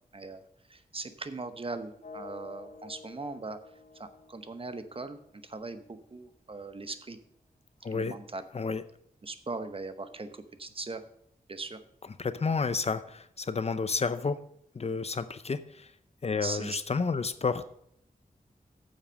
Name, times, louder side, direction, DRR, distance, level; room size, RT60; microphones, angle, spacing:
voice 1, 0.1-0.4 0.7-3.6 3.9-7.2 7.9-8.4 9.2-11.0 11.5-11.8 16.4-16.8, right 3 dB, 40° right, 10 dB, 0.9 m, -39 dB
sound 1, 2.0-6.0, left 4 dB, 60° left, 1.4 m, -50 dB
voice 2, 7.8-8.1 8.5-8.8 12.2-14.4 14.7-15.9 16.2-17.7, left 4 dB, 45° left, 13 dB, 0.6 m, -30 dB
8.8 x 7.3 x 6.3 m, 0.72 s
wide cardioid pair, 95°, 15 cm